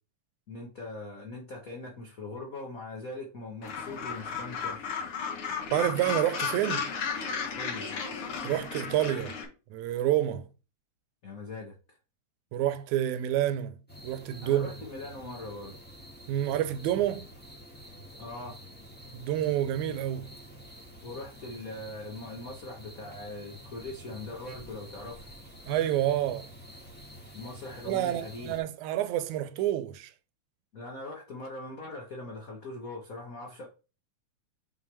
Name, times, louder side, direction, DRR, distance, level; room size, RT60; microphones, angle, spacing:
voice 1, 0.5-4.8 7.5-7.9 11.2-12.0 14.4-15.8 18.2-18.6 21.0-25.3 27.3-28.5 30.7-33.6, left 2 dB, 70° left, 0.8 m, -41 dB
Gull seagull, 3.6-9.4, left 6 dB, 55° left, 1.8 m, -34 dB
voice 2, 5.7-6.9 8.4-9.4 9.7-10.5 12.5-13.8 14.0-14.7 16.3-17.3 19.1-20.3 25.7-26.5 27.9-30.1, right 12 dB, 85° right, 2.0 m, -28 dB
sound 1, 13.9-28.6, equal, 5° left, 1.1 m, -48 dB
5.9 x 5.2 x 3.3 m
omnidirectional pair, 3.3 m